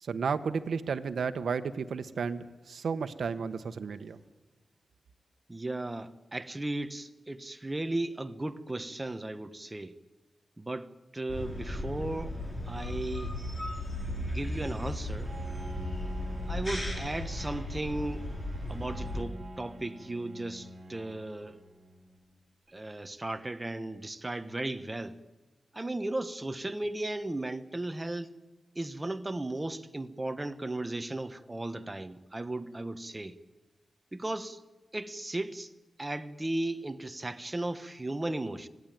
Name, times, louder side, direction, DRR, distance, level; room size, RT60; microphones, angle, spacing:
voice 1, 0.0-4.2, right 5 dB, 70° right, 1.2 m, -33 dB
voice 2, 5.5-9.9 10.6-12.4 12.7-13.3 14.2-15.3 16.5-18.3 18.7-21.6 22.7-25.2 25.7-28.3 28.7-33.3 34.1-34.6 34.9-35.7 36.0-38.7, right 2 dB, 15° right, 1.1 m, -36 dB
sound 1, 11.3-19.2, left 1 dB, 20° left, 4.5 m, -36 dB
Bowed string instrument, 15.2-22.3, right 1 dB, 30° right, 4.0 m, -47 dB
25.5 x 17.5 x 9.1 m
wide cardioid pair, 160°, 0 cm